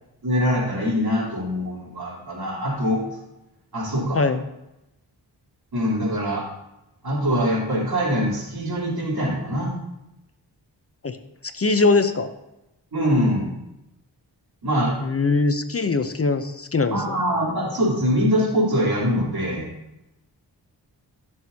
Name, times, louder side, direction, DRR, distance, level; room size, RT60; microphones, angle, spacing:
voice 1, 0.2-3.0 3.7-4.2 5.7-6.4 7.0-9.7 12.9-13.5 14.6-14.9 16.9-19.7, equal, 65° right, -5 dB, 3.6 m, -23 dB
voice 2, 11.5-12.3 15.0-17.2, left 3 dB, 35° left, 9 dB, 0.7 m, -21 dB
15.0 x 6.4 x 2.8 m, 0.91 s
cardioid pair, 65°, 40 cm